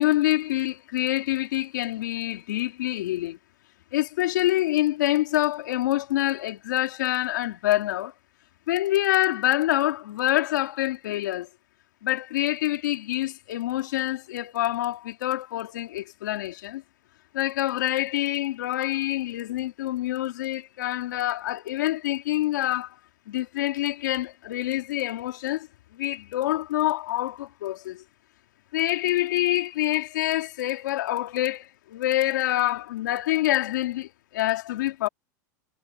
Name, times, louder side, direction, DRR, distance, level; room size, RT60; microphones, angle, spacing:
voice 1, 0.0-3.4 3.9-8.1 8.7-11.5 12.0-16.8 17.3-23.0 23.3-25.7 25.9-28.0 28.7-35.1, left 15 dB, 80° left, 3.0 m, -26 dB
supercardioid pair, 135°, 10 cm